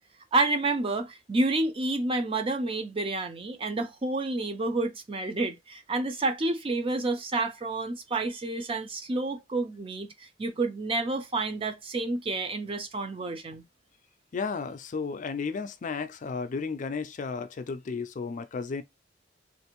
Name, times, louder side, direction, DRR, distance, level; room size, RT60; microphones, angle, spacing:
voice 1, 0.3-13.6, right 2 dB, 30° right, 0.5 m, -29 dB
voice 2, 14.3-18.8, left 5 dB, 45° left, 0.4 m, -33 dB
3.2 x 2.5 x 2.9 m
head